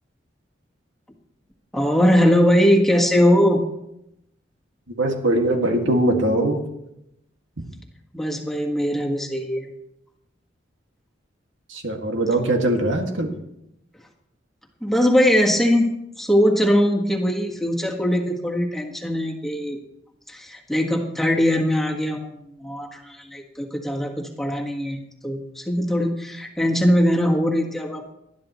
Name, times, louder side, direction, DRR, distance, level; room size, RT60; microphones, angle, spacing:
voice 1, 1.7-3.6 8.1-9.7 14.8-15.9 16.2-19.8 20.3-28.1, equal, ahead, 0 dB, 1.5 m, -21 dB
voice 2, 5.0-6.6 11.7-13.3, right 1 dB, 90° right, 3 dB, 2.0 m, -21 dB
20.0 x 12.0 x 3.1 m, 0.83 s
head